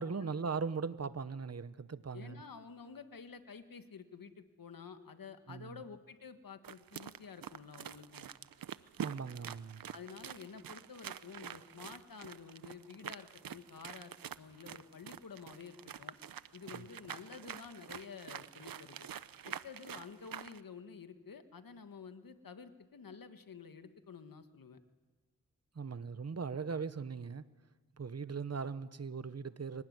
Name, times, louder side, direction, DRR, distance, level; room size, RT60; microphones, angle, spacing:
voice 1, 0.0-2.4 5.5-5.8 9.0-9.8 16.7-16.9 25.7-27.4 28.0-29.8, right 5 dB, 45° right, 1.1 m, -39 dB
voice 2, 2.1-8.3 9.9-16.1 16.5-19.1 19.4-24.8, left 6 dB, 75° left, 1.7 m, -50 dB
sound 1, 6.6-20.6, right 9 dB, 80° right, 0.7 m, -47 dB
23.5 x 18.5 x 9.7 m
cardioid pair, 60°, 34 cm